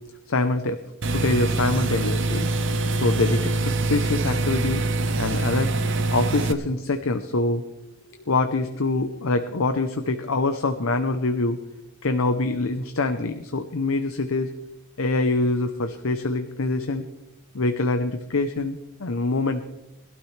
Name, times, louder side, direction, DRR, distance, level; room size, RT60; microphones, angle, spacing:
voice 1, 0.3-0.8 1.1-2.5 2.9-4.8 5.2-5.7 6.1-7.6 8.2-11.6 12.0-14.5 15.0-17.0 17.5-19.6, left 3 dB, 70° left, 8 dB, 0.7 m, -24 dB
sound 1, 1.0-6.5, right 3 dB, 55° right, 0.9 m, -24 dB
21.0 x 12.5 x 3.3 m, 0.99 s
head